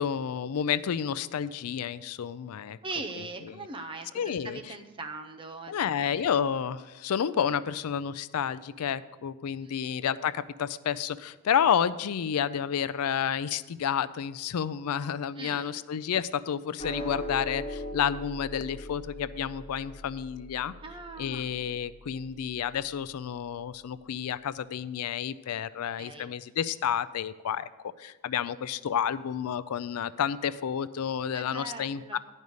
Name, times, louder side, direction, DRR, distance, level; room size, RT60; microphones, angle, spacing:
voice 1, 0.0-2.8 4.1-4.6 5.7-20.7 21.2-27.7 28.0-32.2, left 8 dB, 85° left, 16 dB, 0.4 m, -30 dB
voice 2, 2.8-6.4 9.6-9.9 15.4-15.9 20.8-21.5 26.0-26.3 31.3-32.2, right 3 dB, 25° right, 5 dB, 0.6 m, -41 dB
sound 1, 16.8-23.3, left 1 dB, 25° left, 0.8 m, -40 dB
10.5 x 5.4 x 6.4 m, 1.1 s
head